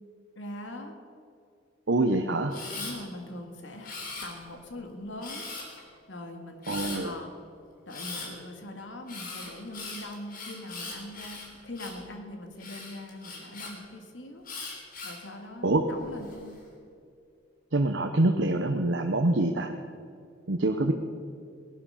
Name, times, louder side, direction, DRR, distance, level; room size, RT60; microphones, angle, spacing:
voice 1, 0.4-1.0 2.7-5.4 6.1-7.3 7.9-14.4 15.0-16.6 20.7-20.9, left 1 dB, 85° left, 4 dB, 2.1 m, -42 dB
voice 2, 1.9-2.6 6.7-7.1 15.6-15.9 17.7-19.7 20.5-20.9, right 2 dB, 70° right, 5 dB, 0.9 m, -25 dB
Camera, 2.5-2.9 3.8-4.6 5.2-5.8 6.6-7.0 7.9-8.3 9.1-12.0 12.6-13.7 14.4-15.2 15.8-16.4, left 3 dB, 50° left, 3.5 m, -40 dB
18.5 x 12.0 x 5.7 m, 2.3 s
head